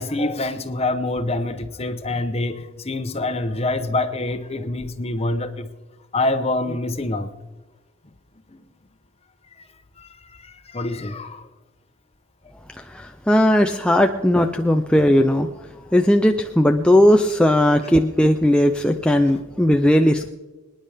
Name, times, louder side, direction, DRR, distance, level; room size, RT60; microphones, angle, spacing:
voice 1, 0.0-5.7 6.1-7.3 8.5-8.6 10.0-10.1 10.7-11.5, left 2 dB, 30° left, 9 dB, 0.9 m, -25 dB
voice 2, 13.3-15.5 15.9-20.3, left 1 dB, 5° left, 4 dB, 0.4 m, -17 dB
25.0 x 10.0 x 3.5 m, 1.2 s
head